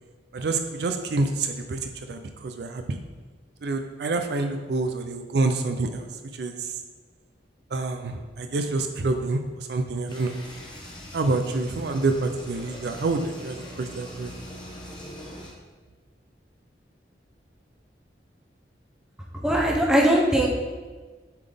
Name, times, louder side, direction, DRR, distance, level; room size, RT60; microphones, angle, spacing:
voice 1, 0.3-3.0 3.6-6.8 7.7-10.4 11.1-14.3, right 3 dB, 65° right, 6 dB, 0.4 m, -27 dB
sound 1, 10.1-15.5, left 1 dB, 25° left, 1.0 m, -42 dB
voice 2, 19.4-20.5, right 1 dB, 5° right, -3 dB, 0.8 m, -20 dB
7.2 x 3.9 x 3.4 m, 1.4 s
head